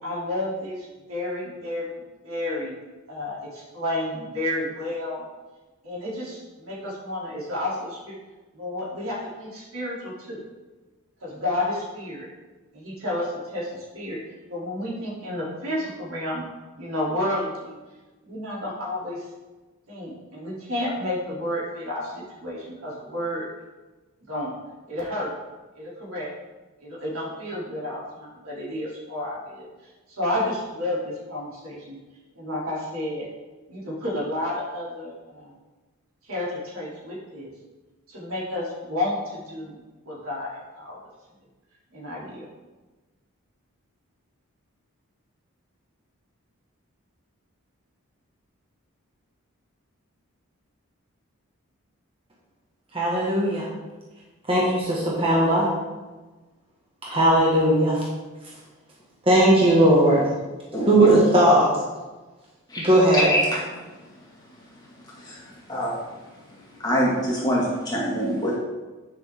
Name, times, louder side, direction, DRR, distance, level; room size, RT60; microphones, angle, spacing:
voice 1, 0.0-2.8 3.1-5.2 5.8-8.1 8.5-10.4 11.2-12.3 12.7-14.2 14.5-16.5 16.8-17.8 18.2-19.3 19.9-23.5 24.3-24.6 24.9-25.3 25.8-26.3 26.8-29.7 30.1-32.0 32.3-33.3 33.7-35.5 36.2-37.5 38.1-39.8 40.0-41.0 41.9-42.5, left 1 dB, 75° right, -5 dB, 2.9 m, -31 dB
voice 2, 52.9-53.7 54.5-55.7 57.1-58.0 59.2-60.3 60.9-61.7 62.8-63.3, right 1 dB, 25° right, -5 dB, 1.6 m, -18 dB
voice 3, 60.7-61.2 62.7-62.9 63.3-63.5 65.3-65.4 65.7-66.0 66.8-68.6, equal, 15° left, -5 dB, 2.0 m, -24 dB
10.0 x 6.2 x 3.6 m, 1.2 s
head